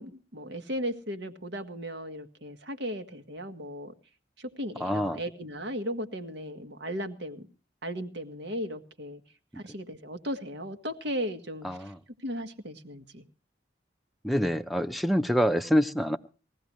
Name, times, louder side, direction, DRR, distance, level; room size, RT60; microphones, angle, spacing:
voice 1, 0.0-3.9 4.4-7.5 7.8-9.2 9.6-11.7 12.2-13.2, equal, 70° right, 1.7 m, -36 dB
voice 2, 4.8-5.2 11.6-12.0 14.2-16.2, equal, ahead, 0.7 m, -26 dB
21.0 x 15.5 x 3.1 m
head